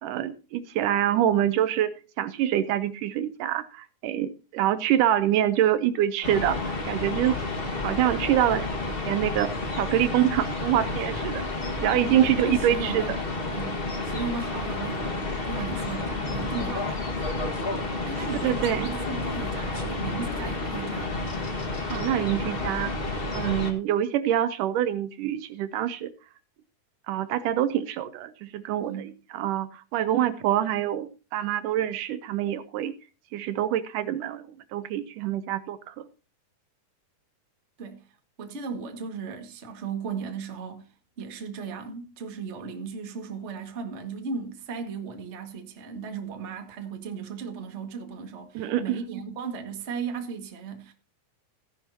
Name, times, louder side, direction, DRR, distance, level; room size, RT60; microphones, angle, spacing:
voice 1, 0.0-7.4 7.8-11.4 11.8-13.2 18.4-19.0 21.9-22.9 23.3-26.1 27.1-32.9 33.3-34.5 34.7-36.1 48.6-49.0, right 11 dB, 75° right, 2.2 m, -26 dB
sound 1, 6.2-23.7, left 2 dB, 50° left, 0.6 m, -30 dB
voice 2, 12.1-13.2 13.5-17.3 18.0-21.3 28.9-29.1 37.8-38.1 38.4-40.9 41.2-50.9, right 5 dB, 30° right, 1.3 m, -36 dB
15.5 x 10.5 x 2.8 m
omnidirectional pair, 3.9 m